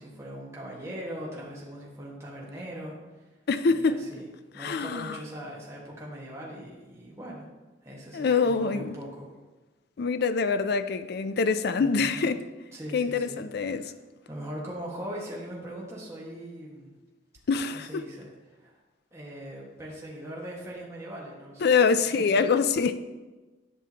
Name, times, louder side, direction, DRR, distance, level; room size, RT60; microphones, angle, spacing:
voice 1, 0.0-2.9 3.6-4.2 4.5-7.5 7.8-9.3 11.8-12.3 12.7-13.4 13.7-13.9 14.2-16.9 17.7-18.3 18.6-18.7 19.1-21.6, equal, 15° right, 1.6 m, -40 dB
voice 2, 3.5-4.0 4.6-5.2 8.1-9.0 10.0-12.4 12.9-13.9 17.5-18.0 21.6-23.0, left 5 dB, 60° left, 0.4 m, -25 dB
11.5 x 6.2 x 2.9 m
head